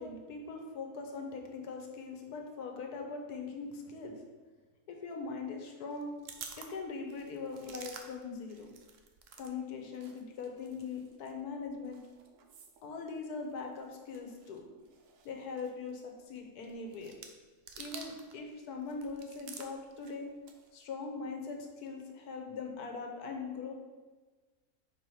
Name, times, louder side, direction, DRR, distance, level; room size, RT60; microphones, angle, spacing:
voice 1, 0.0-4.2 4.9-6.1 6.6-8.7 9.4-12.0 12.8-14.6 15.2-17.1 17.8-20.3 20.7-23.7, left 4 dB, 85° left, 3 dB, 1.4 m, -41 dB
sound 1, 5.9-9.5 9.8-18.4 18.7-20.8, right 6 dB, 65° right, 1.0 m, -52 dB
5.0 x 4.7 x 5.5 m, 1.3 s
omnidirectional pair, 1.6 m